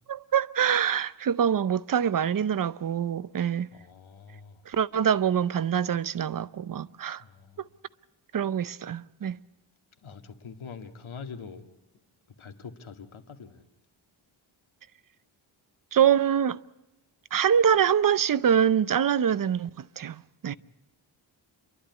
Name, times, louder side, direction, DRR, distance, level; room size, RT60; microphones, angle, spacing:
voice 1, 0.1-3.7 4.7-7.2 8.3-9.4 15.9-16.6 17.3-20.5, right 8 dB, 45° right, 0.6 m, -25 dB
voice 2, 3.7-4.6 7.2-7.7 10.0-11.6 12.4-13.6 20.5-20.6, left 5 dB, 75° left, 2.0 m, -44 dB
29.0 x 11.5 x 9.6 m
wide cardioid pair, 100°, 48 cm